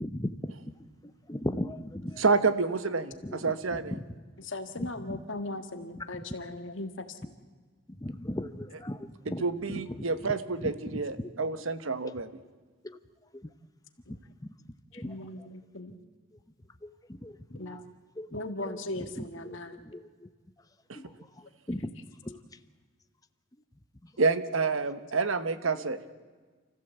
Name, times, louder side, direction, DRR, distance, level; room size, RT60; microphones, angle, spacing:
voice 1, 0.0-2.7 3.2-4.2 4.8-5.2 6.0-6.2 7.2-7.3 7.9-11.3 11.6-11.7 12.0-12.2 12.8-13.0 13.3-13.5 14.1-14.5 14.9-15.5 16.3-16.4 16.8-17.9 18.2-20.3 20.6-20.7 20.9-21.9 22.2-22.6 23.5-23.6 24.0-24.1 25.7-25.9, left 1 dB, 15° left, 10 dB, 0.8 m, -39 dB
voice 2, 2.2-3.1 3.4-3.8 9.4-12.3 24.2-26.0, right 4 dB, 75° right, 11 dB, 1.2 m, -28 dB
voice 3, 4.4-7.2 14.1-14.2 14.9-16.0 17.5-17.8 18.3-19.8, left 2 dB, 65° left, 7 dB, 1.8 m, -38 dB
29.0 x 15.0 x 8.1 m, 1.4 s
head